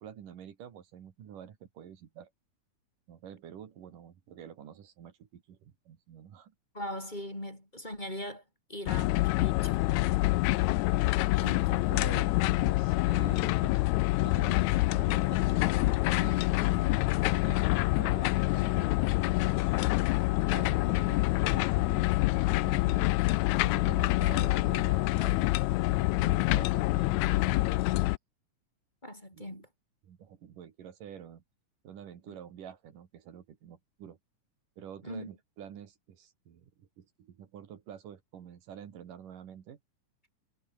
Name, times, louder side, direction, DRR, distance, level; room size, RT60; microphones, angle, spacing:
voice 1, 0.0-2.3 3.1-6.5 10.7-10.8 11.4-13.8 14.2-15.8 16.1-17.1 17.4-18.9 19.4-19.8 20.5-23.1 23.6-27.8 29.3-29.6 30.0-31.4 31.8-34.2 34.8-39.8, right 9 dB, 80° right, 3.8 m, -47 dB
voice 2, 6.7-8.4 8.7-9.8 11.4-11.6 29.0-29.7 35.0-35.3, left 1 dB, 15° left, 4.9 m, -40 dB
sound 1, 8.9-28.2, left 20 dB, 80° left, 1.7 m, -26 dB
omnidirectional pair, 3.7 m